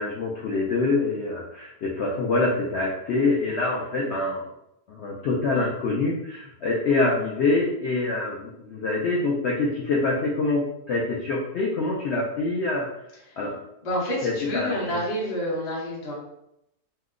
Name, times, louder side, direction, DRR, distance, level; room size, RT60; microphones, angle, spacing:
voice 1, 0.0-4.4 4.9-12.9 13.4-13.6 14.2-14.7, left 3 dB, 85° left, -3 dB, 0.6 m, -25 dB
voice 2, 13.8-16.1, equal, 35° left, -5 dB, 0.7 m, -28 dB
2.8 x 2.1 x 3.6 m, 0.82 s
omnidirectional pair, 1.8 m